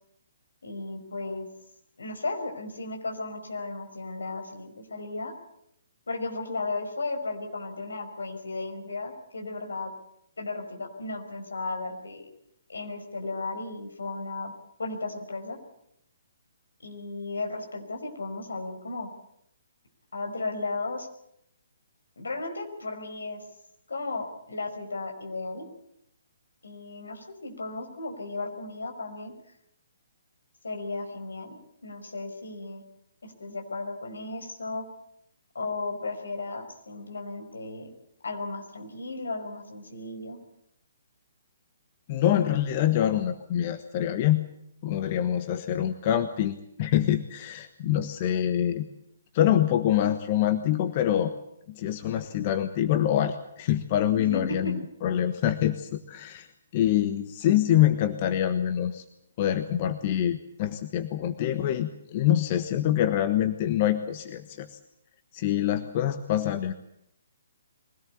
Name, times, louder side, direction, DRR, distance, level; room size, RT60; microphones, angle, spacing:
voice 1, 0.6-1.5 2.0-5.3 6.1-9.9 10.4-12.3 12.7-14.5 14.8-15.6 16.8-19.1 20.1-21.1 22.2-23.4 23.9-25.7 26.6-29.3 30.6-32.8 33.2-34.9 35.5-37.9 38.2-40.4 54.2-54.8, left 3 dB, 75° left, 4 dB, 5.4 m, -35 dB
voice 2, 42.1-44.4 44.8-48.9 49.3-51.3 51.7-56.5 56.7-59.0 59.4-64.8 65.3-66.7, left 11 dB, 40° left, 9 dB, 1.3 m, -25 dB
23.5 x 17.5 x 8.6 m, 0.76 s
figure-of-eight pair, 135°, 0 cm